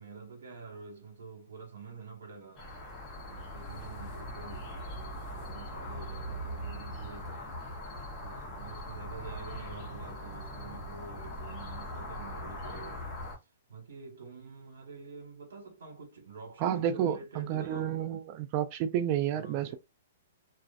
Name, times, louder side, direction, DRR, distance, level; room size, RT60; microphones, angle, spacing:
voice 1, 0.0-2.7 3.2-7.6 8.2-13.2 13.7-18.0 19.3-19.8, right 4 dB, 75° right, 1.3 m, -48 dB
sound 1, 2.6-13.4, equal, 20° left, 0.8 m, -41 dB
voice 2, 16.6-19.7, right 10 dB, 35° right, 0.3 m, -30 dB
2.4 x 2.4 x 2.4 m
hypercardioid pair, 150°, 0 cm